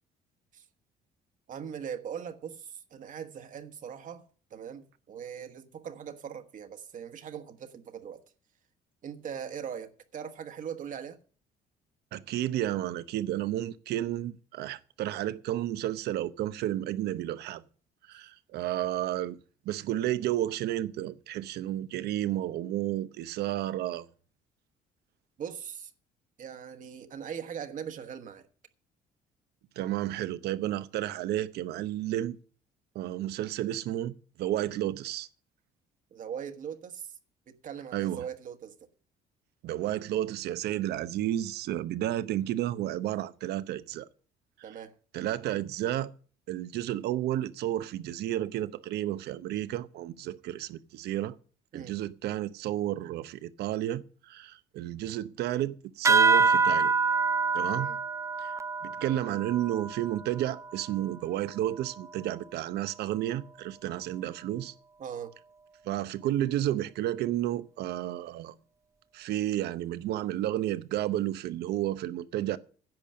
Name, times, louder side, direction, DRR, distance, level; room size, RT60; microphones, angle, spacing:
voice 1, 1.5-8.2 9.0-11.2 25.4-25.9 26.4-28.5 36.1-37.1 37.5-38.8 44.6-44.9 51.7-51.9 57.8-58.0 65.0-65.3, right 8 dB, 50° right, 1.3 m, -40 dB
voice 2, 12.1-17.6 18.1-19.4 19.6-24.1 29.8-32.4 32.9-35.3 37.9-38.3 39.6-44.1 45.1-46.1 46.5-51.4 51.7-56.9 57.5-57.9 58.4-58.5 58.8-64.7 65.8-68.6 69.1-72.6, right 13 dB, 75° right, 0.8 m, -32 dB
sound 1, 56.0-61.0, right 4 dB, 20° right, 0.4 m, -26 dB
10.5 x 6.9 x 7.7 m
cardioid pair, 110°, 17 cm